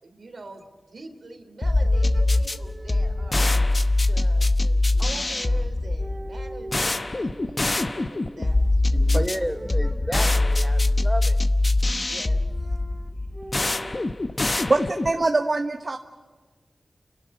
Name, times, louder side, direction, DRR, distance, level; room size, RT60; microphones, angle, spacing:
voice 1, 0.0-3.5 4.0-9.0 12.0-12.8 14.3-14.7, right 2 dB, 70° right, 4 dB, 3.3 m, -44 dB
sound 1, 1.6-15.2, left 2 dB, 45° left, 1.0 m, -23 dB
sound 2, 1.8-3.6 4.9-5.7 6.0-6.9 7.3-8.5 9.4-11.3 12.4-14.0, right 1 dB, 30° right, 1.7 m, -43 dB
voice 2, 8.9-11.4 11.8-11.9 13.2-13.8, equal, 5° right, 6 dB, 1.3 m, -33 dB
voice 3, 14.7-16.0, right 2 dB, 50° right, 5 dB, 1.1 m, -23 dB
30.0 x 12.0 x 9.5 m, 1.4 s
cardioid pair, 45°, 0 cm